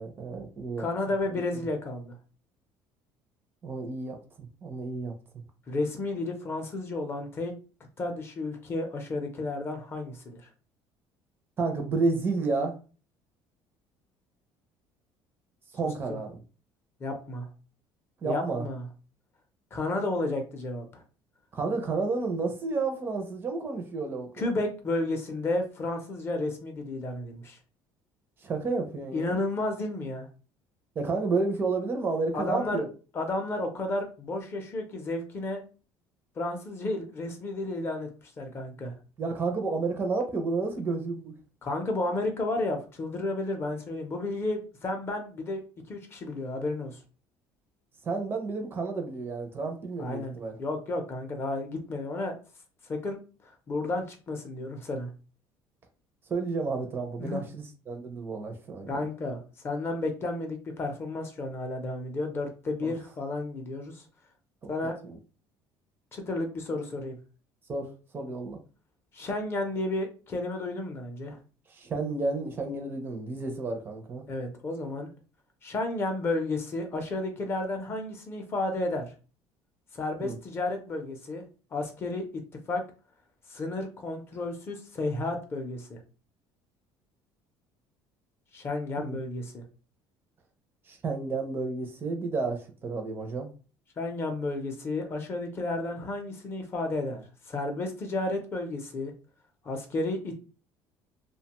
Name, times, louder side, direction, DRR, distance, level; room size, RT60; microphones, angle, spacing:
voice 1, 0.0-0.8 3.6-5.1 11.6-12.8 15.7-16.4 18.2-18.6 21.5-24.5 28.4-29.4 31.0-32.9 39.2-41.3 48.0-50.6 56.3-59.0 62.8-62.9 64.6-64.7 65.0-65.2 67.7-68.6 71.7-74.2 80.2-80.4 89.0-89.2 90.9-93.5, right 3 dB, 25° right, 0.5 m, -31 dB
voice 2, 0.8-2.2 5.7-7.5 8.0-10.4 16.1-16.2 17.0-17.5 18.2-18.8 19.7-21.0 24.4-27.6 29.1-30.3 32.3-32.8 33.1-35.6 36.4-38.1 38.4-38.9 41.6-45.6 45.9-47.0 50.0-52.3 52.9-53.2 53.4-55.1 57.2-57.4 58.9-64.0 64.7-65.0 66.1-67.2 69.1-71.4 74.3-75.1 75.6-79.1 79.9-81.4 81.7-82.3 82.7-82.8 83.5-86.0 88.5-89.6 94.0-99.1 99.6-100.4, left 2 dB, 25° left, 0.5 m, -32 dB
2.7 x 2.1 x 2.9 m
cardioid pair, 160°, 9 cm